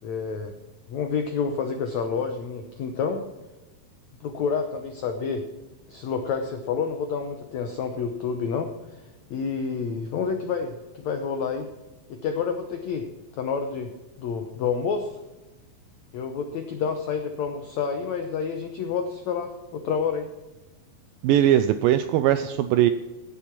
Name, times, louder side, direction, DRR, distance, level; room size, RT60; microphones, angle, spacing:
voice 1, 0.0-0.5 0.9-3.2 4.2-5.5 5.9-9.0 9.3-11.7 12.1-13.0 13.4-13.9 14.2-15.2 16.1-20.3, left 6 dB, 90° left, 6 dB, 1.5 m, -29 dB
voice 2, 21.2-22.9, right 11 dB, 85° right, 11 dB, 2.0 m, -20 dB
16.0 x 7.1 x 6.0 m, 1.1 s
omnidirectional pair, 4.6 m